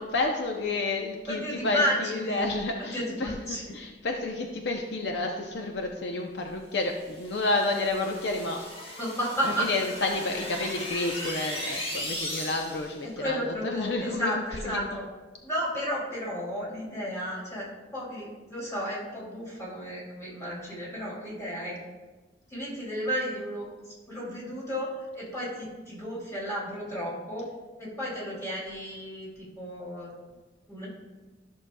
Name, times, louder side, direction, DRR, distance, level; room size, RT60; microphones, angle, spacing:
voice 1, 0.0-8.6 9.4-13.4 13.6-14.9, left 2 dB, 65° left, 2 dB, 0.6 m, -30 dB
voice 2, 1.3-2.4 2.8-3.7 9.0-9.7 13.0-15.0 15.4-21.8 22.5-27.5 27.8-30.1 30.7-30.9, equal, 15° left, -7 dB, 2.7 m, -33 dB
sound 1, 7.0-13.0, left 1 dB, 35° left, 1.5 m, -37 dB
13.5 x 6.2 x 2.2 m, 1.2 s
head